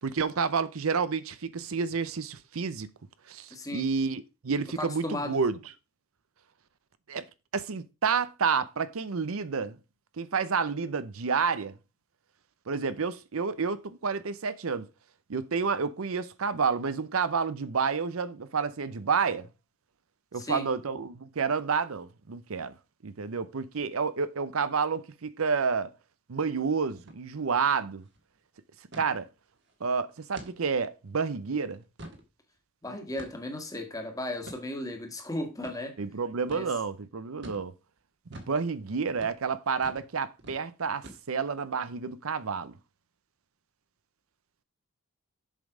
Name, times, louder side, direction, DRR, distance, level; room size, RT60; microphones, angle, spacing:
voice 1, 0.0-2.9 3.3-5.6 7.1-7.2 7.5-9.8 10.2-11.7 12.7-14.9 15.3-19.5 20.3-22.7 23.0-25.9 26.3-28.0 28.9-29.3 29.8-31.8 36.0-37.7 38.3-42.8, right 5 dB, 85° right, 0.7 m, -29 dB
voice 2, 3.5-3.9 4.8-5.4 20.3-20.7 32.8-36.0 36.5-36.7, left 1 dB, 15° left, 1.6 m, -35 dB
sound 1, 27.0-27.2 27.5-27.6 27.9-28.2 28.9-29.1 29.6-29.7 30.3-30.6 31.1-31.2 31.7-32.3 33.2-33.5 34.4-34.6 35.6-35.8 36.5-36.7 37.4-37.7 38.3-38.6 39.1-39.4 39.8-40.1 40.4-40.6 41.0-41.5, right 1 dB, 55° right, 1.6 m, -46 dB
7.5 x 5.3 x 5.0 m
head